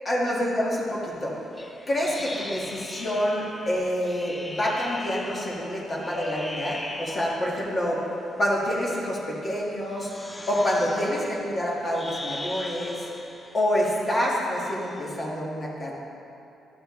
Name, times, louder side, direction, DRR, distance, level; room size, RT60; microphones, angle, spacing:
voice 1, 0.1-1.3 1.9-8.0 8.4-10.1 10.5-13.1 13.5-15.9, equal, 35° left, -4 dB, 1.8 m, -27 dB
sound 1, 1.6-7.8 8.6-9.2 9.9-15.2, left 2 dB, 15° left, 0.5 m, -40 dB
sound 2, 6.2-9.3, left 3 dB, 85° left, 0.5 m, -43 dB
11.0 x 6.2 x 3.2 m, 2.8 s
cardioid pair, 90°, 0 cm